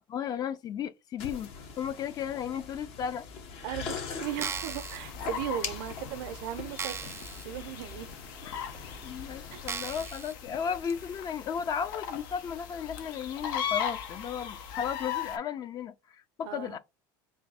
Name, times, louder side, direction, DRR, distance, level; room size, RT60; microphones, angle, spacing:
voice 1, 0.1-3.3 8.4-8.7 9.0-16.8, left 8 dB, 40° left, 0.4 m, -35 dB
sound 1, 1.2-10.1, left 5 dB, 65° left, 1.0 m, -42 dB
voice 2, 3.6-7.2 7.4-8.1 9.5-9.7 16.4-16.8, right 11 dB, 80° right, 0.5 m, -37 dB
sound 2, 4.2-15.4, left 8 dB, 85° left, 0.6 m, -39 dB
sound 3, 4.3-5.0 5.7-5.8 6.2-6.3 6.8-7.5 7.9-8.0 8.7-8.8 9.7-10.3 10.9-11.0, right 6 dB, 25° right, 0.4 m, -37 dB
3.1 x 2.6 x 4.0 m
supercardioid pair, 105°, 11 cm